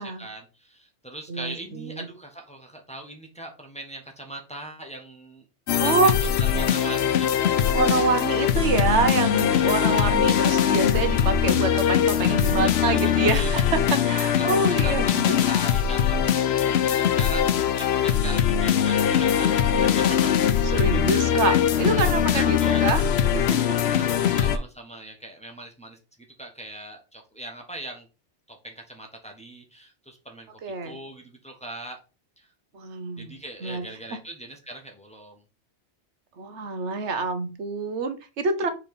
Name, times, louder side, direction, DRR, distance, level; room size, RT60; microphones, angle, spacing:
voice 1, 0.0-5.4 5.8-6.1 6.5-7.8 9.5-10.2 12.6-13.6 14.3-21.0 21.3-21.4 22.4-22.9 23.7-26.0 26.4-28.1 28.5-30.5 30.8-32.0 32.4-32.5 33.2-35.4, right 2 dB, 5° left, 1 dB, 1.2 m, -40 dB
voice 2, 1.3-2.1 5.8-6.2 7.7-15.4 20.6-23.1 23.3-23.8 24.2-24.5 30.6-31.0 32.7-33.9 36.4-38.7, right 4 dB, 85° right, 9 dB, 1.3 m, -26 dB
sound 1, 5.7-24.6, left 9 dB, 70° left, 0.9 m, -21 dB
4.5 x 4.3 x 5.4 m, 0.32 s
omnidirectional pair, 1.1 m